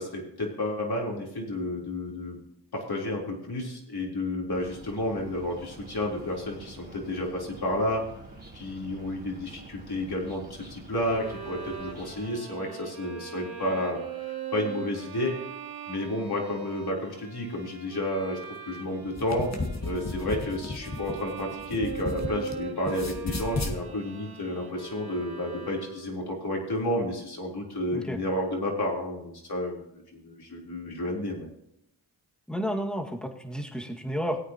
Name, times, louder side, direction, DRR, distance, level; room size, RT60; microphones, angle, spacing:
voice 1, 0.0-2.4 2.7-8.0 8.5-15.3 15.9-19.5 19.8-31.5, left 1 dB, 60° left, -2 dB, 3.9 m, -31 dB
sound 1, 4.5-12.3, right 2 dB, 20° right, 3.2 m, -47 dB
Bowed string instrument, 11.0-26.2, right 7 dB, 60° right, 2.9 m, -41 dB
sound 2, 19.0-22.5 22.8-23.8, left 3 dB, 40° left, 2.0 m, -34 dB
voice 2, 32.5-34.4, equal, ahead, 2 dB, 2.0 m, -31 dB
18.0 x 8.7 x 3.0 m, 0.79 s
cardioid pair, 45°, 42 cm